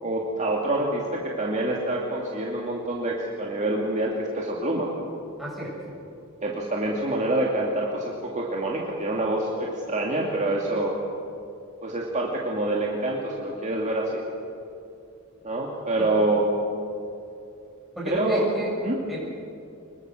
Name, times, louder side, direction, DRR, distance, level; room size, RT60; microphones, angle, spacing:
voice 1, 0.0-4.9 6.4-10.9 11.8-14.1 15.4-16.4 18.1-18.4 18.8-19.2, right 1 dB, 35° right, -2 dB, 2.4 m, -26 dB
voice 2, 5.4-5.7 16.0-16.1 17.9-18.7 19.1-19.2, right 1 dB, ahead, -4 dB, 7.7 m, -31 dB
25.5 x 22.0 x 6.5 m, 2.5 s
head